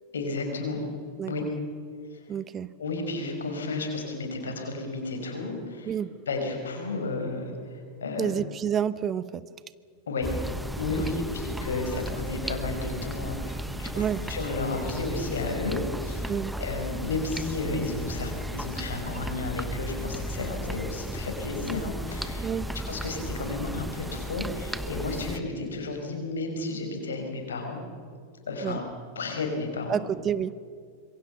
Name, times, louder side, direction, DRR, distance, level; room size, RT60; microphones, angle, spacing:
voice 1, 0.1-0.9 1.3-1.4 2.1-2.2 2.8-5.9 6.3-8.3 10.1-10.3 10.8-22.5 22.7-27.8 28.5-28.8 29.2-30.0, left 3 dB, 65° left, 4 dB, 5.7 m, -32 dB
voice 2, 2.3-2.7 5.9-6.2 8.2-9.4 11.2-11.3 14.0-14.2 16.3-16.6 22.4-22.7 28.6-28.8 29.9-30.6, right 8 dB, 25° right, 17 dB, 0.7 m, -29 dB
sound 1, 10.2-25.4, right 1 dB, 5° right, 1.2 m, -35 dB
26.5 x 23.0 x 6.8 m, 2.1 s
figure-of-eight pair, 90°, 0 cm